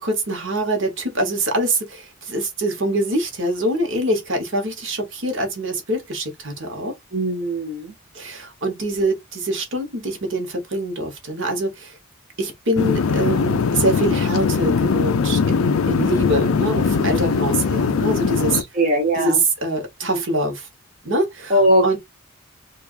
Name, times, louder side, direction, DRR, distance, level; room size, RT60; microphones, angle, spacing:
voice 1, 0.0-6.9 8.1-11.9 12.4-18.6 19.2-19.4 19.6-20.7 21.0-21.6 21.8-22.0, right 1 dB, 60° right, 1.3 m, -24 dB
voice 2, 7.1-7.9 18.5-19.4 21.5-22.0, right 1 dB, 40° right, 1.0 m, -20 dB
sound 1, 12.8-18.6, left 5 dB, 75° left, 0.4 m, -20 dB
4.5 x 2.5 x 2.5 m
head